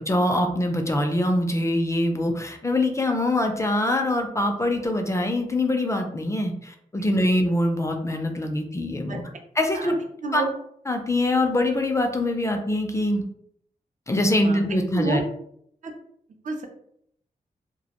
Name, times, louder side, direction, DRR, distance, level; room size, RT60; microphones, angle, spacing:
voice 1, 0.0-9.2 9.6-10.0 10.3-10.4 10.9-13.2 14.1-15.2, left 1 dB, 20° left, 4 dB, 0.4 m, -24 dB
voice 2, 14.9-15.2 15.8-15.9 16.4-16.7, right 3 dB, 60° right, 3 dB, 0.5 m, -29 dB
2.1 x 2.1 x 2.8 m, 0.68 s
cardioid pair, 70°, 15 cm